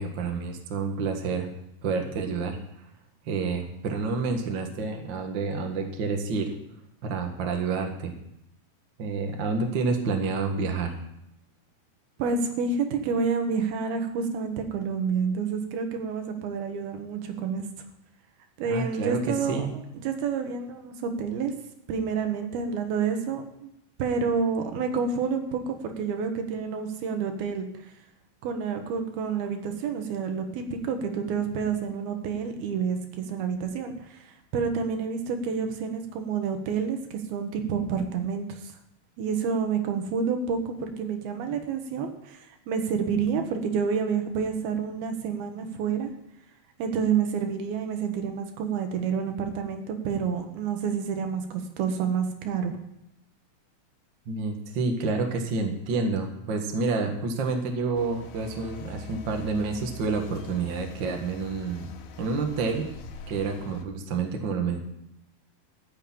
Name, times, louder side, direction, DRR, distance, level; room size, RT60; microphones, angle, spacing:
voice 1, 0.0-1.5 1.8-2.6 3.2-6.5 7.0-8.1 9.0-10.9 18.6-19.7 54.2-61.9 62.2-62.9 63.3-64.8, right 4 dB, 50° right, 3 dB, 1.4 m, -29 dB
voice 2, 12.2-17.7 18.6-19.7 20.0-21.5 21.9-23.7 24.0-27.7 28.4-38.7 39.2-46.1 46.8-52.8, right 6 dB, 75° right, 5 dB, 3.1 m, -29 dB
sound 1, 57.9-63.8, left 4 dB, 75° left, 2.7 m, -44 dB
14.0 x 7.0 x 8.8 m, 0.81 s
omnidirectional pair, 4.5 m